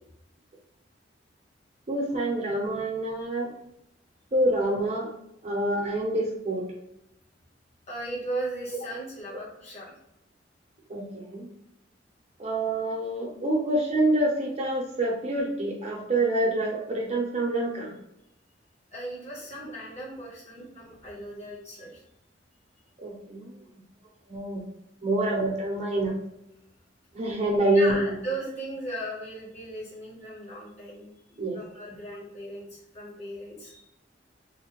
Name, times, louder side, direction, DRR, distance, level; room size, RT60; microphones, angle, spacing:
voice 1, 1.9-3.5 4.3-5.1 5.4-6.7 8.9-9.0 10.9-11.5 12.4-17.9 23.0-23.6 24.3-24.6 25.0-26.2 27.1-28.2 31.4-31.6, right 1 dB, 35° right, -2 dB, 0.7 m, -26 dB
voice 2, 7.9-9.9 18.9-22.0 27.7-33.8, right 1 dB, 35° left, -6 dB, 1.2 m, -37 dB
3.1 x 2.2 x 3.0 m, 0.80 s
head